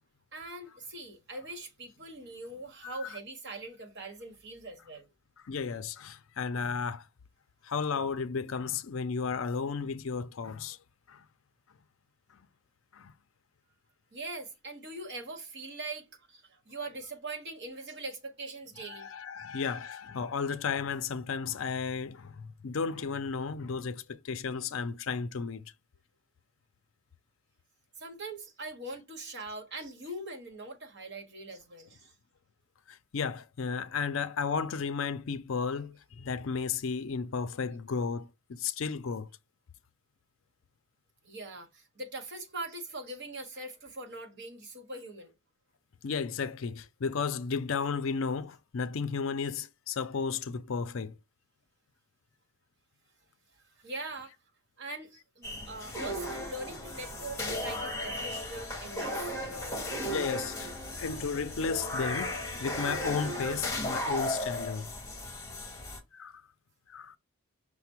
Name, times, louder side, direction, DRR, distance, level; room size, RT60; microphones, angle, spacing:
voice 1, 0.3-5.1 14.1-19.1 19.4-19.5 28.0-32.1 41.2-45.3 53.5-54.3 54.8-59.8, right 2 dB, 50° right, 1.2 m, -42 dB
voice 2, 5.5-7.0 7.6-10.8 11.1-11.2 12.9-13.1 18.9-25.7 32.9-39.3 46.0-51.1 60.0-60.7 61.0-64.9 66.1-66.4 66.9-67.2, left 5 dB, 60° left, 0.5 m, -33 dB
sound 1, 55.4-66.0, left 1 dB, 15° left, 1.2 m, -36 dB
5.8 x 2.1 x 4.4 m
head